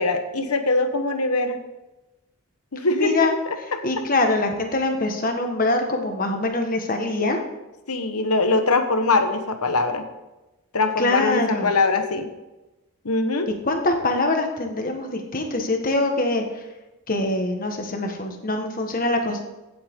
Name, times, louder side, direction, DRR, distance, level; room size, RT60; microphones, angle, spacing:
voice 1, 0.0-1.6 2.7-3.8 7.9-10.0 10.7-12.3 13.0-13.5, left 3 dB, 85° left, 7 dB, 1.2 m, -22 dB
voice 2, 2.9-3.3 3.8-7.4 11.0-11.7 13.7-16.4 17.1-19.4, left 2 dB, 40° left, 4 dB, 1.5 m, -23 dB
16.0 x 7.8 x 3.7 m, 1.0 s
head